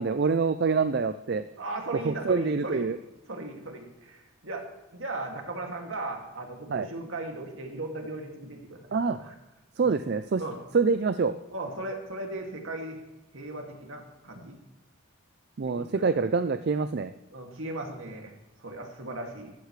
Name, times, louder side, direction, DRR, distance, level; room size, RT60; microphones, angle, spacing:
voice 1, 0.0-1.4 2.0-3.0 6.7-6.9 8.9-9.2 9.8-10.4 10.7-11.3 15.6-17.1, right 4 dB, 50° right, 11 dB, 0.4 m, -26 dB
voice 2, 1.6-2.8 3.3-4.6 4.9-8.8 9.2-9.3 9.8-9.9 10.4-10.6 11.5-13.0 13.3-14.5 15.6-16.0 17.3-18.3 18.6-19.5, right 2 dB, 70° right, 2 dB, 2.3 m, -37 dB
14.5 x 13.0 x 3.2 m, 1.1 s
head